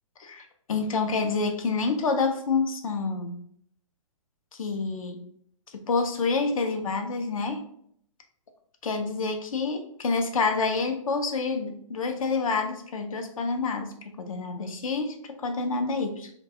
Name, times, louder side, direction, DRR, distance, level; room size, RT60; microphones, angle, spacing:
voice 1, 0.2-3.3 4.6-5.2 5.9-7.6 8.8-16.3, left 4 dB, 75° left, 5 dB, 0.6 m, -28 dB
2.3 x 2.2 x 2.7 m, 0.65 s
hypercardioid pair, 130°, 18 cm